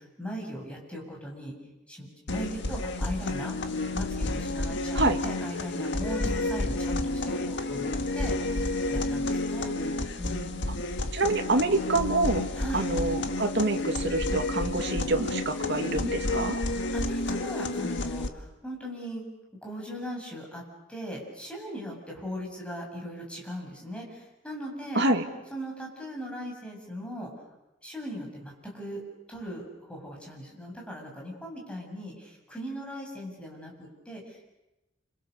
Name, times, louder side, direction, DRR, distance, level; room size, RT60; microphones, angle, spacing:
voice 1, 0.0-1.5 1.9-3.5 3.9-9.7 10.2-10.5 12.5-12.8 16.6-19.2 19.6-20.6 20.9-25.0 25.5-27.4 27.8-29.0 29.3-34.5, equal, 5° left, -1 dB, 7.6 m, -39 dB
sound 1, 2.3-18.3, left 2 dB, 60° left, 1.7 m, -30 dB
voice 2, 11.1-12.4 12.7-16.6 24.9-25.2, right 2 dB, 60° right, 5 dB, 2.4 m, -26 dB
29.5 x 26.5 x 6.8 m, 0.94 s
head